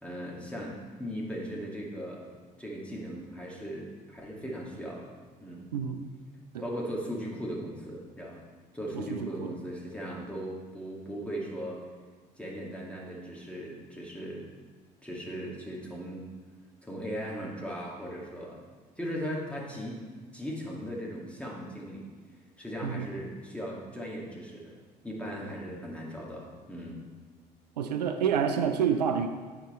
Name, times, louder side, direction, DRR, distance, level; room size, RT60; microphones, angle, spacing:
voice 1, 0.0-2.3 2.6-5.1 5.4-5.7 6.6-8.4 8.7-11.8 12.4-14.5 15.0-16.3 16.8-18.6 19.0-20.1 20.3-22.1 22.6-27.0, equal, 5° left, -4 dB, 2.1 m, -38 dB
voice 2, 8.9-9.5 22.8-23.1 27.8-29.3, right 7 dB, 80° right, 8 dB, 0.5 m, -28 dB
9.4 x 4.9 x 4.4 m, 1.5 s
figure-of-eight pair, 55°, 21 cm